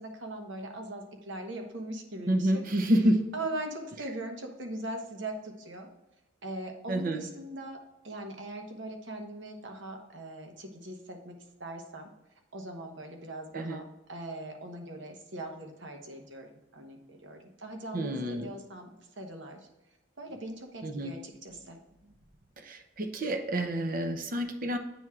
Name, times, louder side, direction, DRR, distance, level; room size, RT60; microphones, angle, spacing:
voice 1, 0.0-2.6 3.3-5.9 6.4-7.8 8.0-12.1 12.5-19.6 20.2-21.8, right 1 dB, 60° right, 3 dB, 1.1 m, -40 dB
voice 2, 2.3-3.3 6.9-7.2 13.5-13.8 17.9-18.5 20.8-21.2 22.6-24.8, right 1 dB, 40° right, 7 dB, 0.6 m, -28 dB
9.1 x 3.6 x 4.4 m, 1.0 s
head